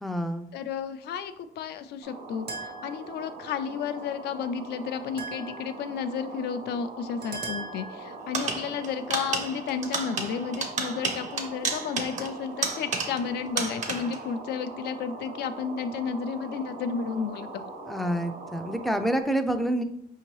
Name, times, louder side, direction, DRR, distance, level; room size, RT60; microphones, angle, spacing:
voice 1, 0.0-0.5 17.9-19.8, right 1 dB, ahead, 7 dB, 0.3 m, -27 dB
voice 2, 0.5-17.6, left 6 dB, 80° left, 10 dB, 0.4 m, -32 dB
sound 1, 2.0-19.2, right 3 dB, 85° right, 0.9 m, -42 dB
sound 2, 2.5-3.3 5.2-5.9 7.2-8.2, right 4 dB, 70° right, 1.2 m, -39 dB
sound 3, 8.3-13.3 13.6-14.2, right 4 dB, 45° right, 0.8 m, -31 dB
5.1 x 2.8 x 3.0 m, 0.71 s
cardioid pair, 120°, 17 cm